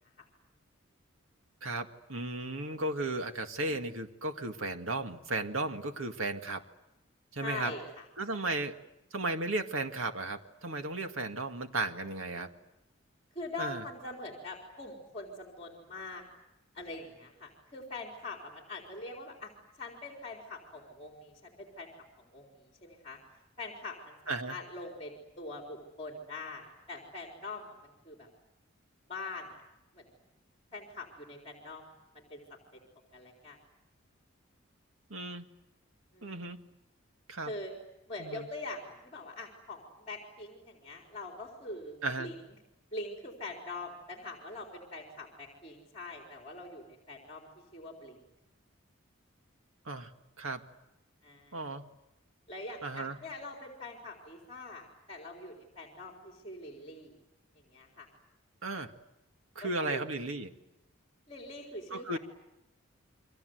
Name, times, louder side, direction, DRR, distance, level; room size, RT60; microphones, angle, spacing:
voice 1, 1.6-6.6 7.3-7.7 8.2-8.7 9.1-12.5 13.6-13.8 24.3-24.6 35.1-35.5 36.2-36.6 37.3-37.5 38.2-38.4 42.0-42.3 49.9-50.1 50.4-50.6 51.5-51.8 52.8-53.2 58.6-58.9 59.6-60.5 61.9-62.2, right 2 dB, 85° right, 6 dB, 2.0 m, -35 dB
voice 2, 7.4-8.1 8.3-8.6 13.3-16.2 16.7-19.5 19.8-21.9 22.2-23.2 23.6-28.3 29.1-29.6 29.9-30.1 30.7-31.9 32.1-32.4 33.1-33.6 36.1-36.4 37.4-37.7 38.1-42.4 42.9-47.5 47.7-48.2 51.2-51.6 52.5-57.2 57.6-58.1 59.6-60.0 61.3-62.2, left 2 dB, 30° left, 1 dB, 4.1 m, -43 dB
29.5 x 24.5 x 8.0 m, 0.91 s
head